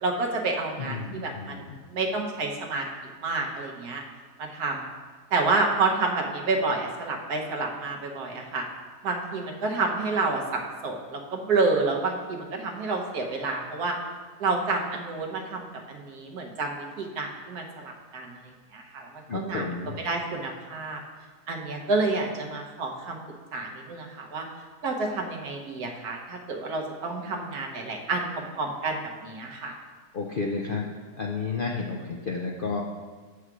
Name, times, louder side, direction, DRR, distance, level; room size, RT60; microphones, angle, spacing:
voice 1, 0.0-2.8 3.2-4.0 4.4-4.8 5.3-8.6 9.0-14.0 14.4-18.4 18.7-21.0 21.5-23.2 23.5-24.5 24.8-29.7, right 3 dB, 75° right, 1 dB, 1.5 m, -29 dB
voice 2, 0.8-1.8 19.3-20.0 30.1-30.9 31.2-32.8, left 4 dB, 60° left, 0 dB, 0.5 m, -31 dB
7.9 x 4.8 x 6.0 m, 1.4 s
omnidirectional pair, 1.7 m